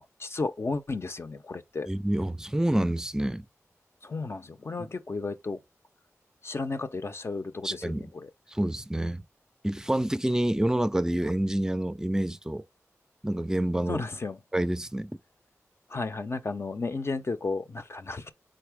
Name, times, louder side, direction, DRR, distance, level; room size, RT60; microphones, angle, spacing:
voice 1, 0.0-1.9 4.0-5.6 6.4-8.3 13.9-14.4 15.9-18.3, left 3 dB, 50° left, 0.6 m, -33 dB
voice 2, 1.9-3.5 4.8-4.9 7.6-8.1 8.5-9.2 9.6-12.6 13.2-14.0 14.5-15.1, right 1 dB, 10° right, 0.4 m, -27 dB
4.1 x 3.8 x 3.4 m
cardioid pair, 45°, 6 cm